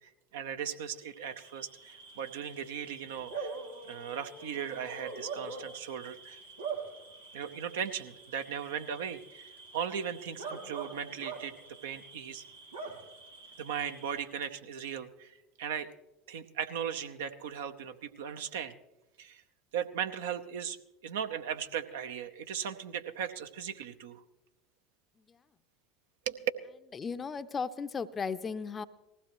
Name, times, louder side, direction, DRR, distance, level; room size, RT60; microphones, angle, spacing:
voice 1, 0.0-3.5 3.9-6.4 7.3-12.4 13.6-15.9 16.3-18.7 19.2-19.4 19.7-20.8 21.0-24.2 26.3-26.5, right 8 dB, 70° right, 7 dB, 0.8 m, -37 dB
Bark / Cricket, 1.1-14.4, right 4 dB, 85° right, 2.4 m, -44 dB
voice 2, 26.9-28.9, left 5 dB, 25° left, 12 dB, 0.6 m, -35 dB
19.5 x 15.5 x 3.1 m, 0.96 s
figure-of-eight pair, 75°, 0 cm